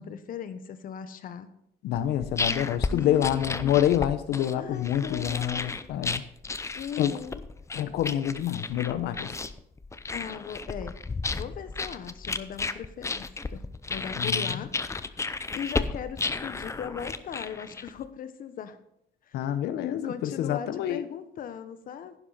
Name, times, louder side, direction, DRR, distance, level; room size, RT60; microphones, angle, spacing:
voice 1, 0.0-1.5 2.9-3.8 4.6-5.8 6.7-7.4 10.1-11.0 11.3-14.7 15.1-18.8 19.3-19.5 20.0-22.2, left 8 dB, 55° left, 11 dB, 1.2 m, -38 dB
voice 2, 1.8-6.2 7.0-7.2 7.7-9.3 14.2-14.5 19.3-21.0, left 11 dB, 75° left, 12 dB, 0.9 m, -27 dB
sound 1, 1.9-18.1, left 3 dB, 15° left, 0.6 m, -33 dB
11.0 x 10.0 x 4.2 m, 0.76 s
cardioid pair, 110°, 17 cm